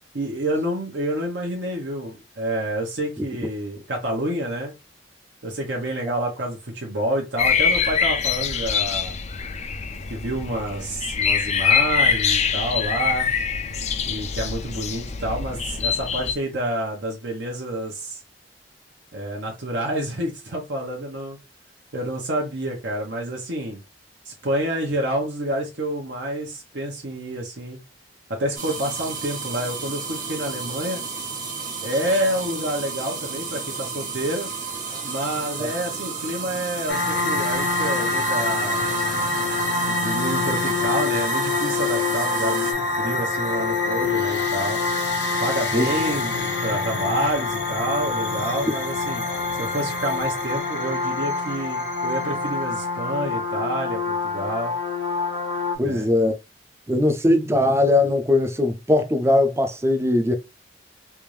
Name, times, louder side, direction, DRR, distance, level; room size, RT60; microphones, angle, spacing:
voice 1, 0.1-4.7 5.4-9.2 10.1-13.3 14.1-18.2 19.1-21.4 21.9-23.8 24.3-27.8 28.3-31.0 31.8-34.5 35.0-38.9 39.9-42.7 43.0-44.8 45.4-49.2 49.6-54.7 55.8-56.1, right 1 dB, 75° right, 0.9 m, -28 dB
sound 1, 7.4-16.3, left 6 dB, 40° left, 0.4 m, -24 dB
sound 2, 28.5-42.7, right 5 dB, 45° right, 1.2 m, -32 dB
sound 3, 36.9-55.8, left 3 dB, 85° left, 1.1 m, -25 dB
voice 2, 55.8-56.4 56.9-60.3, left 1 dB, 15° right, 0.5 m, -20 dB
3.4 x 2.6 x 3.1 m
head